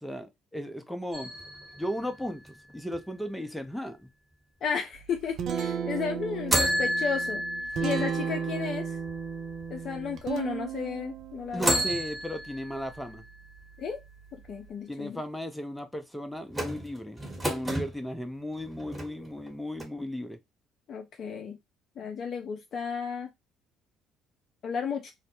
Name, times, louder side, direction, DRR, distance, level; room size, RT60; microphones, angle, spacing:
voice 1, 0.0-1.3 1.8-4.1 11.5-13.3 14.9-17.2 17.5-20.4, equal, 5° left, 0.6 m, -35 dB
sound 1, 1.1-3.0 6.5-9.6 10.2-10.3 11.5-13.3 16.5-17.9 18.6-19.5 19.8-19.9, right 1 dB, 15° right, 1.1 m, -31 dB
voice 2, 4.6-7.4 7.8-9.0 9.7-11.9 13.8-14.0 14.3-15.2 20.9-21.6 22.0-23.3 24.6-25.1, left 6 dB, 55° left, 0.4 m, -33 dB
Guitar, 4.9-14.7, right 7 dB, 60° right, 0.4 m, -36 dB
2.1 x 2.0 x 2.9 m
hypercardioid pair, 60°, 0 cm